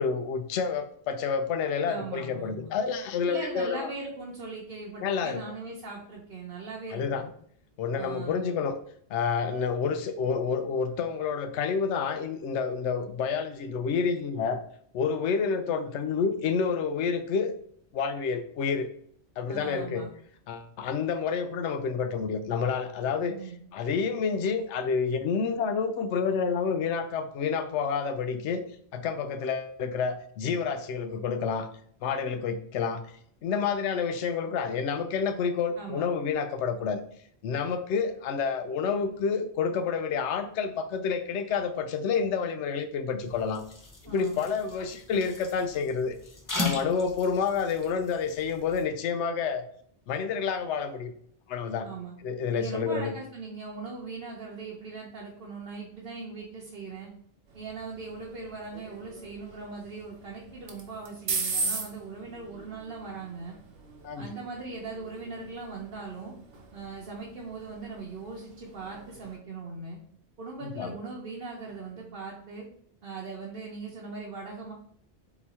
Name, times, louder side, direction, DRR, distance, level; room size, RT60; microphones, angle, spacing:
voice 1, 0.0-3.9 5.0-5.4 6.9-7.2 7.8-8.8 9.1-14.6 14.9-17.5 17.9-18.9 19.4-20.0 20.5-23.4 23.7-28.6 28.9-31.7 32.0-33.1 33.4-37.0 37.4-43.6 44.0-46.2 46.6-49.6 50.1-51.1 51.5-51.9 52.2-53.1 64.0-64.3 70.6-70.9, left 5 dB, 90° left, 10 dB, 0.9 m, -29 dB
voice 2, 1.9-2.7 3.3-7.3 8.0-8.5 19.5-20.1 23.3-23.6 35.8-36.1 44.1-44.5 51.8-52.2 52.5-57.1 57.5-63.6 64.2-66.3 66.7-70.0 70.4-72.6 73.0-74.7, right 4 dB, 55° right, -3 dB, 1.0 m, -40 dB
Pooping and Pissing, 43.2-48.8, left 3 dB, 25° left, 0.5 m, -38 dB
sound 1, 57.5-69.4, right 4 dB, 90° right, 1.1 m, -39 dB
4.0 x 2.9 x 4.1 m, 0.64 s
omnidirectional pair, 1.1 m